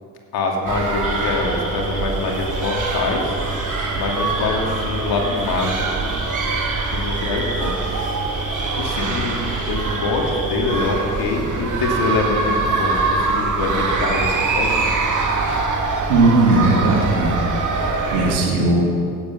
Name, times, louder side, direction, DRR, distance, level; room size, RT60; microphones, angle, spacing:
voice 1, 0.3-3.4 3.9-6.2 6.8-7.9 8.8-14.9, left 3 dB, 60° left, 0 dB, 2.7 m, -24 dB
sound 1, 0.7-18.4, right 3 dB, 45° right, 2.4 m, -23 dB
sound 2, 1.0-10.9, right 1 dB, 20° right, 3.3 m, -33 dB
voice 2, 16.1-17.4 17.7-18.9, right 2 dB, 90° right, -1 dB, 2.1 m, -17 dB
16.5 x 8.5 x 5.5 m, 2.3 s
hypercardioid pair, 50°, 42 cm